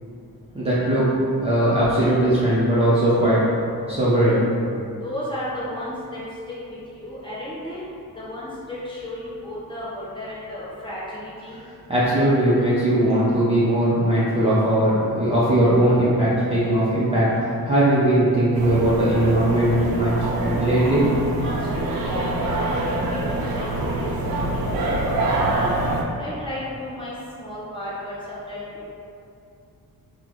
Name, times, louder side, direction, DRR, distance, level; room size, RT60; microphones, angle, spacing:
voice 1, 0.5-1.1 1.4-3.4 3.9-4.4 11.9-21.1, right 1 dB, 15° right, -10 dB, 0.4 m, -19 dB
voice 2, 5.0-6.2 6.7-7.8 8.1-11.6 21.4-25.7 26.2-27.1 27.4-28.7, left 1 dB, 15° left, -10 dB, 0.8 m, -34 dB
sound 1, 18.5-26.0, right 2 dB, 70° right, 0.5 m, -25 dB
3.6 x 2.0 x 3.0 m, 2.6 s
wide cardioid pair, 165°, 37 cm